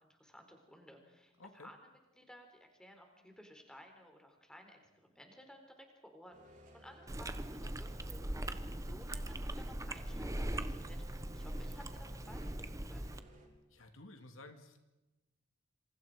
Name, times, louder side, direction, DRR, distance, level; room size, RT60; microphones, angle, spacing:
voice 1, 0.0-1.9 2.2-6.4 6.7-13.1, equal, 5° left, 4 dB, 4.2 m, -57 dB
voice 2, 1.4-1.7 8.9-9.1 13.7-14.8, left 2 dB, 70° left, 6 dB, 2.5 m, -54 dB
sound 1, 6.3-13.5, equal, 35° right, 6.8 m, -59 dB
Chewing mastication, 7.1-13.2, right 1 dB, 15° right, 1.0 m, -40 dB
27.5 x 27.5 x 5.2 m, 1.0 s
head